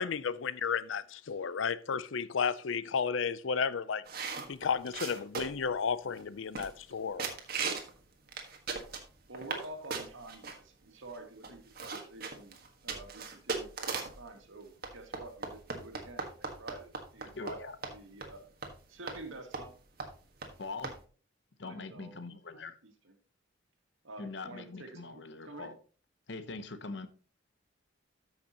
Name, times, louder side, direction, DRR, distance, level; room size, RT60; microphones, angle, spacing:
voice 1, 0.0-4.0 4.5-7.3, left 6 dB, 75° left, 0.5 m, -33 dB
sound 1, 4.1-5.7 6.2-6.3 6.5-6.9 7.2-7.9 8.3-9.6 9.9-10.5 11.1-11.2 11.4-14.2 14.8-17.6 17.8-17.9 18.2-18.3 18.6-18.7 19.1-19.2 19.5-19.7 20.0-20.1 20.4-20.5 20.8-21.0, right 4 dB, 50° right, 1.5 m, -38 dB
voice 2, 9.3-12.6 12.8-17.6 17.9-18.5 18.9-19.7 21.6-23.1 24.0-25.7, right 2 dB, 80° right, 2.0 m, -48 dB
voice 3, 17.3-17.8 20.6-21.0 21.6-22.8 24.2-25.8 26.3-27.1, left 3 dB, 60° left, 0.9 m, -42 dB
13.5 x 5.9 x 2.9 m
head